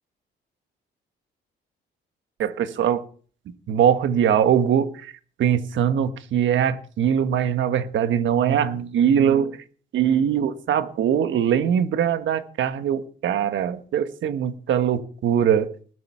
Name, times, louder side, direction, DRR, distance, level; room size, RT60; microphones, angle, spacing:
voice 1, 2.4-3.0 3.7-5.1 5.4-9.6 9.9-15.7, right 8 dB, 70° right, 10 dB, 1.5 m, -21 dB
19.5 x 7.9 x 5.7 m, 0.43 s
cardioid pair, 90°, 20 cm